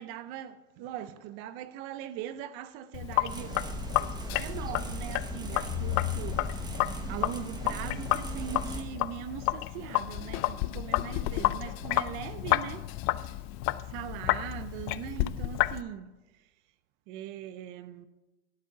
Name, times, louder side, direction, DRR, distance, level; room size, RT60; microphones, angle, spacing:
voice 1, 0.0-6.7 7.1-12.9 13.9-16.1 17.1-18.1, right 10 dB, 60° right, 0.6 m, -41 dB
Sink (filling or washing), 2.9-15.8, left 17 dB, 50° left, 0.4 m, -31 dB
sound 1, 3.3-8.8, right 2 dB, 15° right, 0.9 m, -38 dB
sound 2, 5.5-13.3, left 6 dB, 75° left, 1.4 m, -53 dB
12.0 x 5.2 x 6.5 m
supercardioid pair, 140°, 31 cm